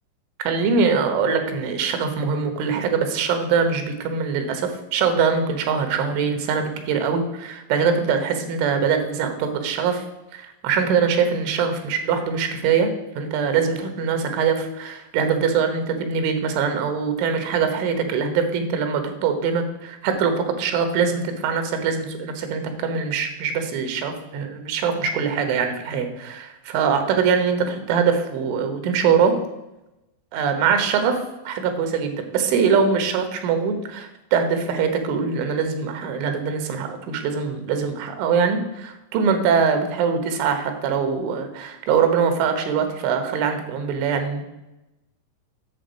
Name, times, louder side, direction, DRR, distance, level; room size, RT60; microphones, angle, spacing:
voice 1, 0.4-10.0 10.3-12.9 13.2-29.4 30.3-31.2 31.5-44.4, right 6 dB, 90° right, 7 dB, 3.6 m, -23 dB
8.6 x 6.9 x 5.2 m, 0.94 s
omnidirectional pair, 5.3 m